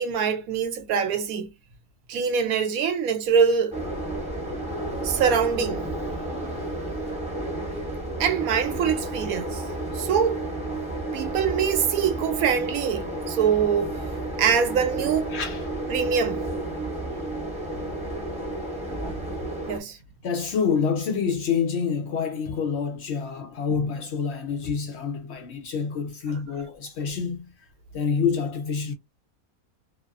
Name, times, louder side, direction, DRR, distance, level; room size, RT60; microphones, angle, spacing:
voice 1, 0.0-1.5 2.1-3.8 5.0-5.9 8.2-9.6 9.9-10.4 11.1-14.0 14.4-15.3 15.9-16.4 19.7-20.0 26.3-26.4, right 7 dB, 75° right, 1.1 m, -24 dB
sound 1, 3.7-19.8, right 2 dB, 5° right, 0.6 m, -31 dB
voice 2, 15.3-15.7 20.2-27.7 27.9-28.9, left 6 dB, 70° left, 0.6 m, -27 dB
2.6 x 2.4 x 2.3 m
omnidirectional pair, 1.5 m